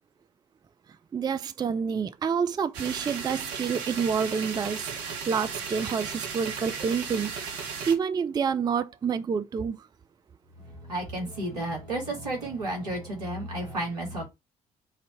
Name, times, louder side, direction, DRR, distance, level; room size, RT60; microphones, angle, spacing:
voice 1, 1.1-9.8, right 6 dB, 20° right, 0.4 m, -28 dB
sound 1, 2.7-8.0, right 6 dB, 65° right, 0.9 m, -35 dB
voice 2, 10.9-14.3, right 1 dB, 85° right, 1.3 m, -32 dB
4.1 x 2.6 x 4.3 m
figure-of-eight pair, 50°, 20 cm